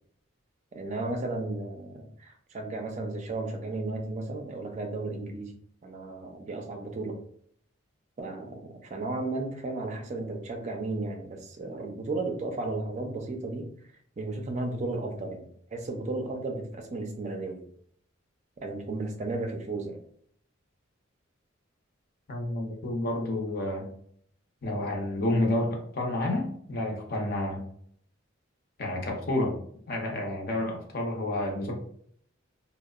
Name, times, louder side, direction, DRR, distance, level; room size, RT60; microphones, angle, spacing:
voice 1, 0.7-5.5 5.8-7.2 8.2-13.7 14.2-17.6 18.6-20.0, right 2 dB, 35° right, 3 dB, 0.4 m, -34 dB
voice 2, 22.3-23.9 24.6-27.6 28.8-29.6 29.9-31.7, left 1 dB, 50° left, 0 dB, 0.6 m, -30 dB
2.7 x 2.0 x 2.3 m, 0.63 s
head